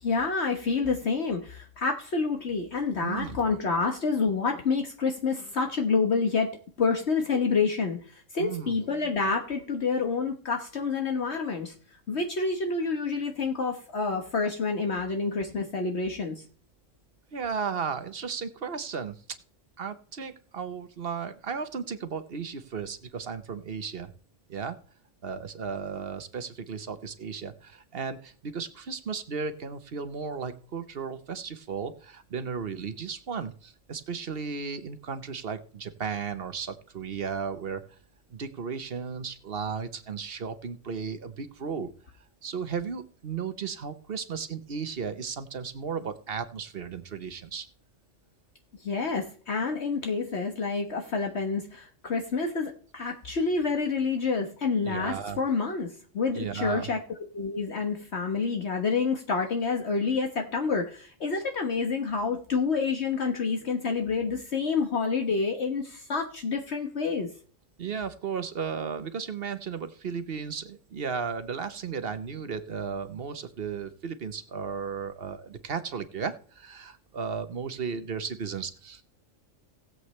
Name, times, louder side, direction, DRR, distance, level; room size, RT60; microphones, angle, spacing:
voice 1, 0.0-6.5 6.8-11.7 12.1-16.4 48.8-55.9 56.1-57.0 57.3-67.3, left 4 dB, 60° left, 3 dB, 1.5 m, -28 dB
voice 2, 3.0-3.4 8.4-8.8 17.3-19.1 19.8-24.1 24.5-24.8 25.2-37.8 38.3-41.9 42.4-47.7 54.8-55.4 56.3-56.9 67.8-79.0, right 6 dB, 55° right, 11 dB, 1.1 m, -35 dB
19.0 x 8.0 x 3.2 m, 0.43 s
omnidirectional pair, 1.3 m